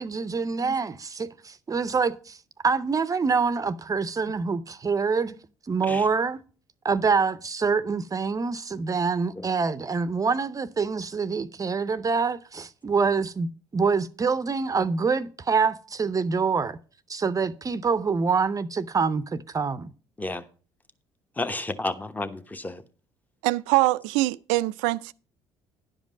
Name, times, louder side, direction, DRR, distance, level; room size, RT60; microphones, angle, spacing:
voice 1, 0.0-2.4 2.6-5.3 5.7-6.4 6.8-16.8 17.1-19.9, right 5 dB, 30° right, 0.6 m, -26 dB
voice 2, 21.4-22.8, left 2 dB, 15° left, 1.1 m, -32 dB
voice 3, 23.4-25.1, right 20 dB, 80° right, 0.4 m, -23 dB
11.0 x 5.2 x 6.2 m
hypercardioid pair, 60°, 12 cm